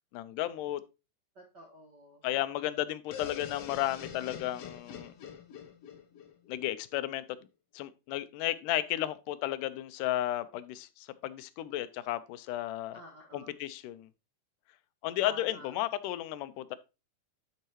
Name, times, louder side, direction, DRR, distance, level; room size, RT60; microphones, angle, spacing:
voice 1, 0.1-0.8 2.2-5.1 6.5-7.2 7.7-13.0 13.3-14.1 15.0-16.8, left 14 dB, 85° left, 2.1 m, -33 dB
voice 2, 1.3-2.2 12.9-13.5 15.2-15.8, equal, 65° right, 1.0 m, -50 dB
sound 1, 3.1-6.9, left 7 dB, 65° left, 1.7 m, -45 dB
11.0 x 4.6 x 2.9 m
omnidirectional pair, 3.7 m